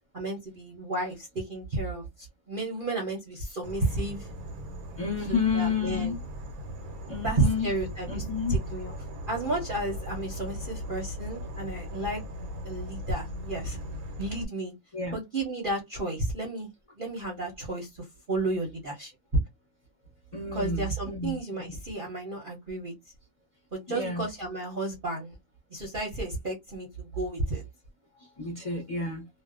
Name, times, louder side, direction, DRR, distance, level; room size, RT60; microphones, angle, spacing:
voice 1, 0.1-4.3 5.3-6.1 7.2-8.2 8.5-9.0 9.3-12.2 12.6-13.8 14.2-14.7 15.1-16.7 17.0-19.1 20.5-22.9 23.7-25.4 25.7-27.6, right 2 dB, 45° right, 0.8 m, -32 dB
Insect / Frog, 3.6-14.5, equal, 80° right, 1.1 m, -39 dB
voice 2, 5.0-6.2 7.1-7.7 8.1-8.5 14.9-15.2 20.3-21.6 23.9-24.3 28.2-29.3, left 4 dB, 35° left, 0.6 m, -30 dB
2.5 x 2.1 x 2.4 m
omnidirectional pair, 1.5 m